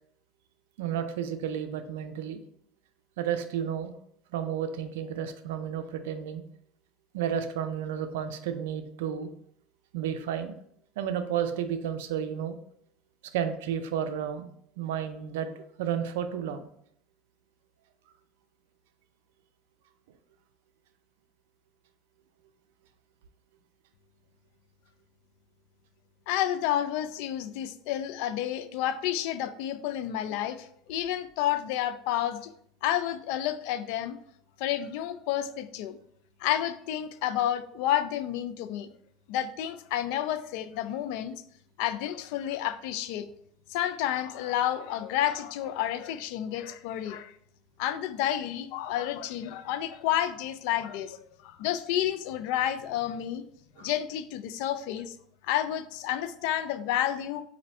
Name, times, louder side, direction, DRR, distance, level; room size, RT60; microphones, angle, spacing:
voice 1, 0.8-2.4 3.2-3.9 4.3-6.4 7.1-9.3 9.9-10.6 11.0-12.6 13.3-14.5 14.8-15.5 15.8-16.7 53.8-53.9, right 8 dB, 85° right, 9 dB, 0.4 m, -32 dB
voice 2, 26.3-32.5 32.8-34.2 34.6-36.0 36.4-38.9 39.3-41.3 41.8-43.3 43.7-47.3 47.8-53.4 53.8-55.1 55.4-57.4, left 11 dB, 75° left, 11 dB, 0.3 m, -30 dB
4.1 x 2.6 x 4.1 m, 0.68 s
supercardioid pair, 105°, 0 cm